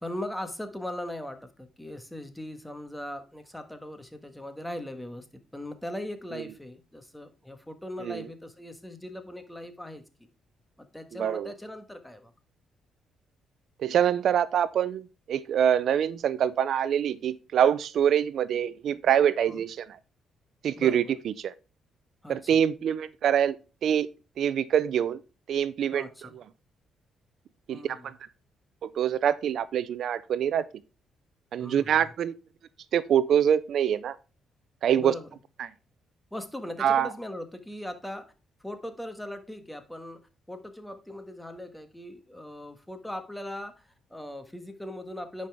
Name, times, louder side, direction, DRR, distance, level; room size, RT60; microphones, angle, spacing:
voice 1, 0.0-5.3 5.5-10.0 10.9-12.3 19.4-19.6 20.8-21.1 22.2-22.6 25.9-26.4 27.7-28.1 31.6-32.1 35.0-35.3 36.3-38.3 38.6-40.2 40.5-45.5, left 1 dB, 5° left, 1.4 m, -39 dB
voice 2, 11.2-11.5 13.8-15.0 15.3-19.9 20.6-21.5 22.3-23.6 23.8-24.1 24.4-25.2 25.5-26.1 27.7-28.1 28.8-30.6 31.5-32.4 32.9-34.1 34.8-35.1 35.6-35.7 36.8-37.1, right 9 dB, 65° right, 0.5 m, -25 dB
9.8 x 5.5 x 3.4 m
cardioid pair, 90°, 0 cm